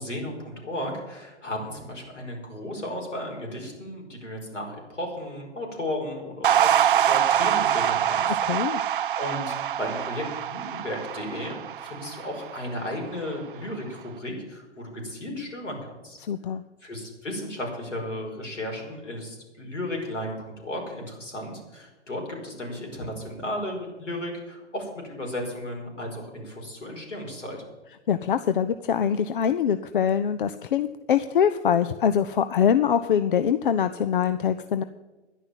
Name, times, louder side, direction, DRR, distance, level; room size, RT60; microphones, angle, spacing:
voice 1, 0.0-16.2 16.8-27.6, left 1 dB, 80° left, 0 dB, 5.3 m, -34 dB
sound 1, 6.4-12.9, right 10 dB, 50° right, 0.4 m, -24 dB
voice 2, 8.5-8.8 16.2-16.6 28.1-34.8, left 8 dB, 45° left, 11 dB, 0.6 m, -23 dB
11.0 x 10.5 x 7.3 m, 1.2 s
figure-of-eight pair, 125°, 36 cm